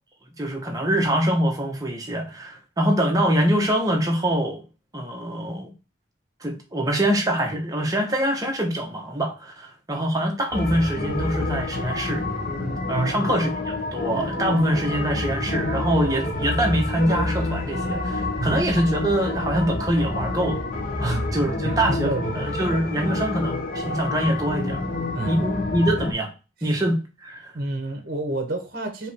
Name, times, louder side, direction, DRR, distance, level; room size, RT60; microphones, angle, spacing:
voice 1, 0.4-4.6 4.9-5.7 6.4-12.2 12.9-13.5 13.9-20.6 21.0-24.8 25.3-26.3 26.6-27.5, right 1 dB, 20° right, 0.9 m, -24 dB
sound 1, 10.5-26.1, left 2 dB, 45° left, 0.9 m, -28 dB
voice 2, 12.9-13.3 18.4-18.6 21.0-21.3 21.6-22.3 23.0-23.1 25.1-25.6 26.6-26.8 27.5-29.1, right 2 dB, 50° right, 1.0 m, -30 dB
4.7 x 2.9 x 3.4 m
head